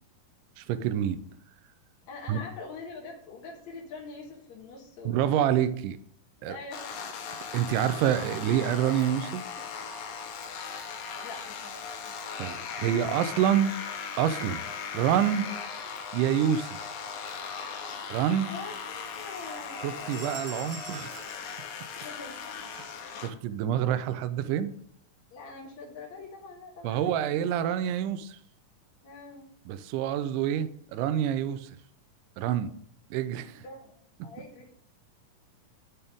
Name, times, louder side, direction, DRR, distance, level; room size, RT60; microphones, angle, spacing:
voice 1, 0.6-1.2 2.3-2.4 5.1-6.0 6.4-6.6 7.5-9.4 12.4-13.7 14.2-14.6 14.9-15.5 16.1-16.8 18.1-18.5 19.8-21.2 22.8-22.9 23.2-24.7 26.8-28.4 29.7-31.7 32.4-32.7 33.1-33.6, right 10 dB, 80° right, 2.1 m, -27 dB
voice 2, 2.1-5.3 6.4-6.9 11.2-12.7 18.5-20.1 22.0-22.4 23.4-23.6 25.3-27.4 29.0-29.5 33.6-34.7, left 3 dB, 60° left, 2.5 m, -44 dB
sound 1, 6.7-23.3, left 6 dB, 85° left, 2.8 m, -38 dB
sound 2, 20.1-22.5, right 5 dB, 55° right, 1.7 m, -46 dB
12.5 x 4.2 x 3.6 m
omnidirectional pair, 3.9 m